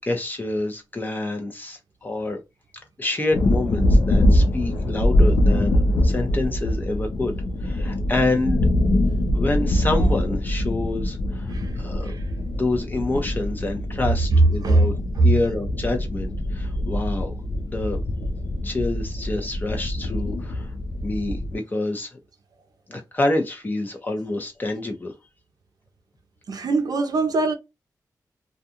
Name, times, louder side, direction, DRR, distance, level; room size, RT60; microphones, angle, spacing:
voice 1, 0.0-2.4 3.0-7.4 7.6-8.6 9.3-11.5 11.8-12.1 12.4-14.9 15.2-17.3 17.7-18.0 18.6-20.7 21.0-22.2 22.9-25.1, left 2 dB, 25° left, 0.8 m, -27 dB
sound 1, 3.3-21.6, left 1 dB, 70° left, 0.5 m, -23 dB
voice 2, 14.3-15.3 26.5-27.5, right 2 dB, 65° right, 0.6 m, -20 dB
2.5 x 2.3 x 2.7 m
wide cardioid pair, 110°, 7 cm